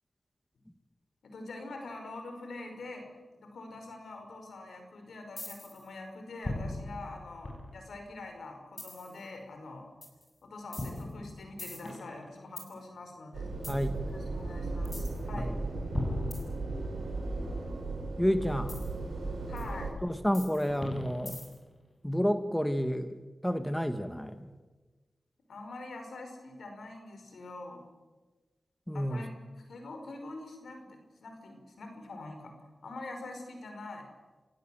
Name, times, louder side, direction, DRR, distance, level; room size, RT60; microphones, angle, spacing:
voice 1, 1.2-3.1 3.4-9.9 10.4-13.5 14.1-15.5 19.5-20.0 25.5-27.8 28.9-29.3 29.7-32.6 32.8-34.1, left 2 dB, 85° left, 4 dB, 5.2 m, -44 dB
sound 1, 5.4-5.8 6.4-8.0 8.8-9.2 10.0-10.2 10.7-12.7 13.6-13.8 14.8-15.2 15.9-17.1 18.7-18.9 19.6-19.7 20.3-21.7, left 2 dB, 35° left, 7.2 m, -39 dB
sound 2, 13.3-19.9, right 2 dB, 85° right, 5.3 m, -36 dB
voice 2, 13.7-14.0 15.4-15.5 18.2-18.9 20.0-21.4 22.0-23.2 23.4-24.5 28.9-29.2, equal, 5° left, 8 dB, 1.9 m, -30 dB
29.5 x 16.5 x 7.8 m, 1.3 s
cardioid pair, 50°, 0 cm